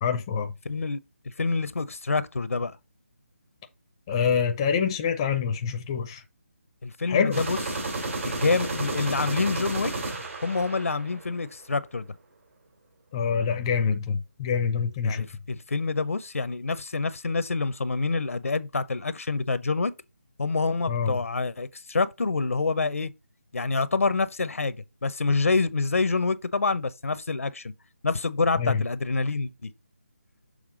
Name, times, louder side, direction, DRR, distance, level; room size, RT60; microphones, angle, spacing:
voice 1, 0.0-0.5 4.1-6.2 7.1-7.4 13.1-15.3 20.9-21.2 28.6-28.8, left 6 dB, 20° left, 0.5 m, -26 dB
voice 2, 0.6-1.0 1.2-2.8 6.8-7.6 8.2-9.9 10.4-12.1 15.0-19.9 20.4-23.1 23.5-27.7 28.0-29.7, left 4 dB, 75° left, 0.7 m, -27 dB
sound 1, 7.3-11.4, right 2 dB, 65° right, 2.7 m, -32 dB
6.6 x 3.4 x 4.9 m
figure-of-eight pair, 160°, 8 cm